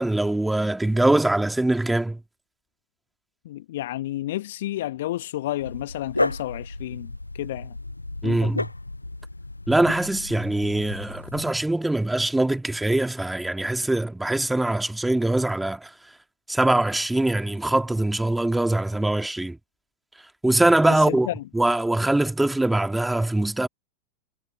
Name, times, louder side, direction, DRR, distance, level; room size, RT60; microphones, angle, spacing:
voice 1, 0.0-2.2 8.2-8.7 9.7-15.9 16.5-19.6 20.4-21.3 21.5-23.7, right 2 dB, 5° right, 2.6 m, -22 dB
voice 2, 3.4-7.8 8.2-8.5 20.9-21.4, left 14 dB, 55° left, 1.5 m, -31 dB
Dog, 5.6-11.5, left 2 dB, 85° left, 0.7 m, -33 dB
figure-of-eight pair, 90°, 0 cm